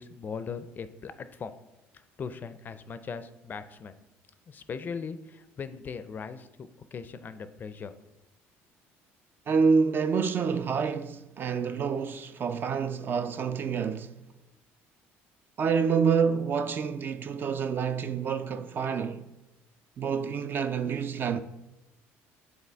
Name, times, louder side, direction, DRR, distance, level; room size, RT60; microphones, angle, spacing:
voice 1, 0.0-1.5 2.2-3.9 4.5-6.5 6.9-7.9, left 5 dB, 35° left, 0.4 m, -39 dB
voice 2, 9.5-14.1 15.6-19.3 20.0-21.4, right 6 dB, 40° right, 0.3 m, -27 dB
8.2 x 3.8 x 3.4 m
supercardioid pair, 100°, 5 cm